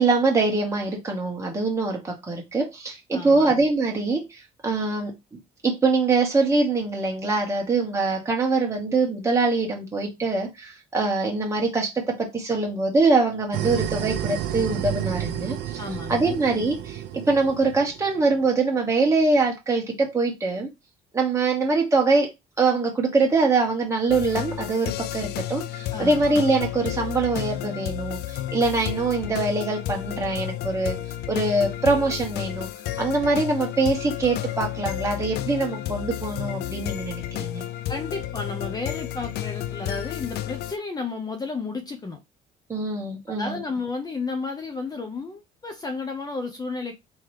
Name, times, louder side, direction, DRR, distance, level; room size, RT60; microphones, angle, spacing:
voice 1, 0.0-4.2 4.6-5.1 5.6-15.8 16.1-17.0 17.3-20.7 21.1-31.0 31.3-32.7 33.0-37.6 42.7-43.6, right 3 dB, 15° right, 1.4 m, -23 dB
voice 2, 3.1-3.5 15.8-16.4 25.9-26.3 37.9-42.2 43.3-46.9, left 3 dB, 25° left, 0.8 m, -32 dB
sound 1, 13.5-18.4, right 11 dB, 80° right, 0.5 m, -31 dB
sound 2, 24.1-40.8, left 13 dB, 70° left, 0.4 m, -31 dB
3.8 x 3.1 x 3.2 m
cardioid pair, 110°, 17 cm